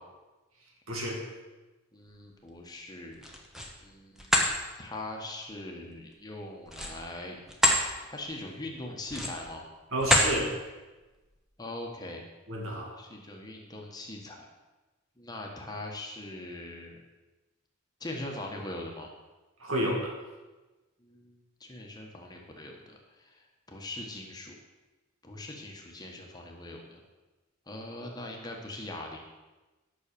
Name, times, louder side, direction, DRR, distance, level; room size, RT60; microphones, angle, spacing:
voice 1, 0.9-1.2 9.9-10.6 12.5-12.9 19.6-20.1, right 1 dB, 75° right, 0 dB, 2.4 m, -30 dB
voice 2, 1.9-3.2 3.8-7.4 8.0-9.6 11.6-12.2 13.0-14.5 15.2-17.0 18.0-19.1 21.0-23.0 23.2-23.4 23.7-24.6 25.2-27.0 27.7-29.3, left 1 dB, 20° left, 0 dB, 1.4 m, -41 dB
sound 1, 3.1-3.7 4.2-4.5 6.6-7.8 8.3-8.5 9.0-9.5 10.0-10.4, left 1 dB, ahead, 1.1 m, -26 dB
9.8 x 6.3 x 6.9 m, 1.2 s
head